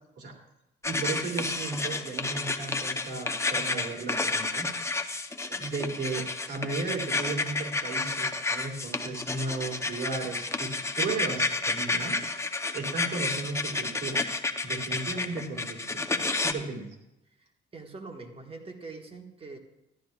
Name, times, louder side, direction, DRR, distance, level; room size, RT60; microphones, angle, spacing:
sound 1, 0.8-16.5, left 3 dB, 15° left, 0.7 m, -31 dB
voice 1, 0.8-4.7 5.0-5.1 5.5-12.2 12.7-14.2 14.6-17.0, right 3 dB, 60° right, 0 dB, 2.8 m, -35 dB
voice 2, 17.4-19.6, right 3 dB, 30° right, 4 dB, 1.5 m, -44 dB
14.5 x 11.5 x 2.4 m, 0.87 s
cardioid pair, 90°, 20 cm